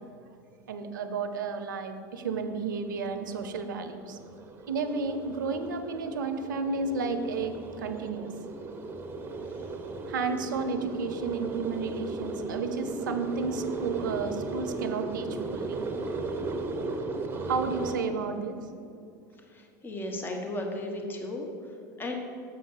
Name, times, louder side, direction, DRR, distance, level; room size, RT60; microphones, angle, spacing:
voice 1, 0.7-4.2 4.7-8.3 10.1-15.8 17.4-18.6, right 4 dB, 85° right, 9 dB, 0.7 m, -32 dB
sound 1, 2.5-18.0, right 3 dB, 20° right, 0.9 m, -36 dB
voice 2, 19.5-21.5 22.0-22.1, left 1 dB, 20° left, 2 dB, 1.3 m, -35 dB
7.3 x 5.4 x 6.5 m, 2.5 s
hypercardioid pair, 90°, 10 cm